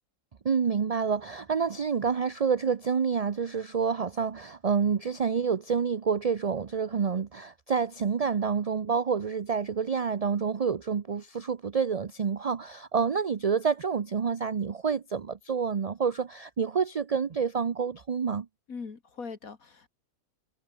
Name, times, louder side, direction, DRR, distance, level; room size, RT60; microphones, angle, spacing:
voice 1, 0.4-18.5, right 6 dB, 45° right, 0.5 m, -28 dB
voice 2, 18.7-19.9, left 5 dB, 65° left, 2.5 m, -41 dB
omnidirectional pair, 1.6 m